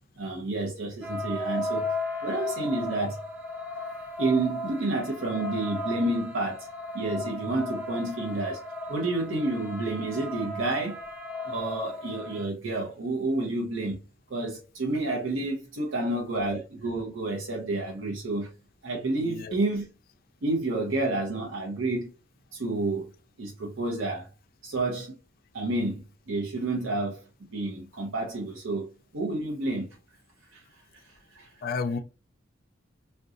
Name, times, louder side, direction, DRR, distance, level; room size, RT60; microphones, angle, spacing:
voice 1, 0.2-1.9 2.2-3.2 4.2-6.7 6.9-8.6 8.9-11.0 11.5-14.0 14.3-18.5 18.8-19.9 20.4-22.1 22.5-23.1 23.4-24.3 24.6-25.1 25.5-27.2 27.5-29.9 30.5-30.6 30.9-31.5, right 2 dB, 85° right, 0.7 m, -30 dB
sound 1, 1.0-12.4, left 2 dB, 10° right, 0.5 m, -35 dB
voice 2, 19.2-19.5 31.6-32.0, left 5 dB, 50° left, 0.3 m, -32 dB
3.7 x 2.2 x 2.5 m
head